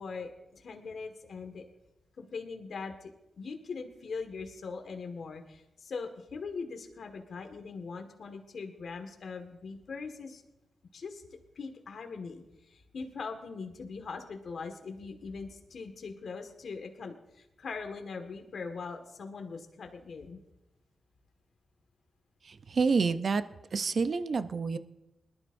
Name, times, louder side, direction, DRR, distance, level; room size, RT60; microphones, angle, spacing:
voice 1, 0.0-1.6 2.2-10.4 10.9-11.2 11.6-20.4, left 4 dB, 70° left, 5 dB, 1.7 m, -41 dB
voice 2, 22.4-23.4 23.7-24.8, right 4 dB, 60° right, 12 dB, 0.6 m, -28 dB
21.0 x 12.5 x 2.6 m, 0.93 s
cardioid pair, 50°, 0 cm